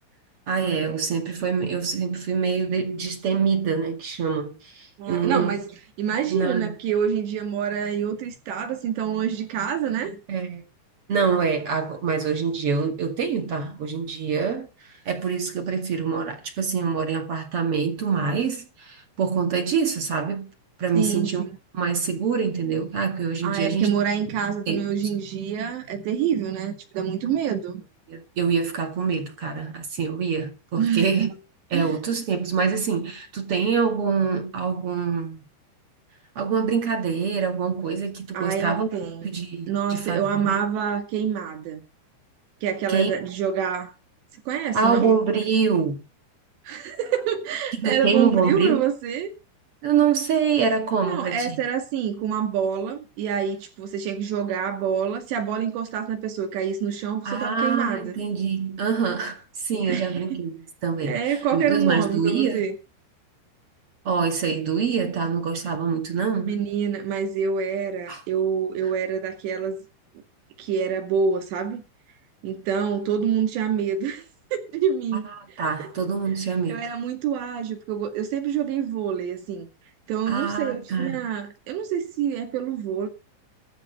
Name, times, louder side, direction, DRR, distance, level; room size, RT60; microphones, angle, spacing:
voice 1, 0.5-5.6 6.2-6.8 10.3-10.7 11.1-14.7 15.1-20.5 20.8-21.4 21.7-23.9 24.7-24.8 28.1-31.3 31.7-35.4 36.4-38.9 39.2-40.6 42.9-43.1 44.7-46.0 47.8-48.8 49.8-51.6 57.2-60.6 60.8-62.7 64.0-66.6 68.1-68.2 75.6-76.9 80.3-81.3, right 6 dB, 45° right, 2.1 m, -25 dB
voice 2, 5.0-5.7 6.0-10.2 20.9-21.5 23.4-27.8 30.8-31.3 31.7-32.0 38.3-39.3 39.7-41.8 42.6-43.9 44.5-45.1 46.7-49.3 51.0-58.2 59.7-60.4 61.0-62.7 66.5-69.8 70.6-71.8 72.4-75.3 75.8-75.9 76.7-79.7 80.1-83.1, right 8 dB, 70° right, 4.1 m, -26 dB
14.0 x 5.0 x 9.2 m
omnidirectional pair, 5.4 m